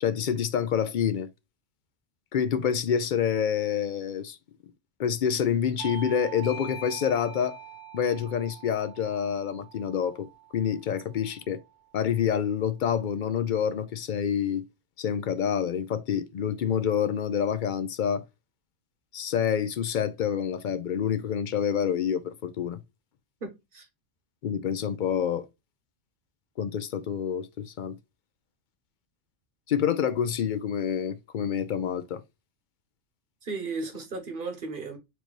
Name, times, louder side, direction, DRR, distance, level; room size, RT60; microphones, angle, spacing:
voice 1, 0.0-1.3 2.3-4.4 5.0-7.6 7.9-10.3 10.5-11.6 11.9-14.6 15.0-18.2 19.1-22.8 24.4-25.5 26.6-28.0 29.7-32.2, left 8 dB, 60° left, 0.5 m, -27 dB
Bell / Doorbell, 5.8-10.9, right 5 dB, 20° right, 1.1 m, -43 dB
voice 2, 23.4-23.9 33.4-35.0, right 3 dB, 45° right, 1.4 m, -35 dB
4.5 x 2.6 x 4.5 m
omnidirectional pair, 1.2 m